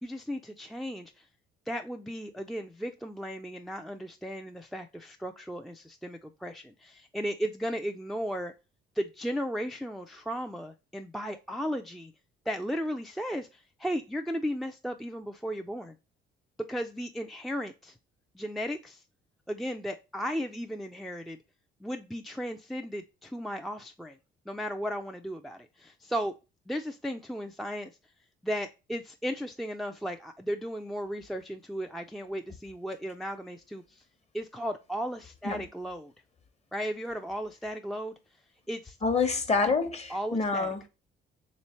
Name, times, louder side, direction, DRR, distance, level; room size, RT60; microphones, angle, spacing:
voice 1, 0.0-1.2 1.7-8.5 9.0-12.1 12.5-15.9 16.7-17.9 18.3-19.0 19.5-21.4 21.8-24.2 24.5-26.3 26.7-27.9 28.4-34.0 34.3-36.1 36.7-38.1 38.7-39.0 40.1-40.7, equal, ahead, 0.4 m, -35 dB
voice 2, 39.0-40.9, left 4 dB, 30° left, 0.9 m, -27 dB
3.3 x 3.1 x 4.2 m
cardioid pair, 85°, 21 cm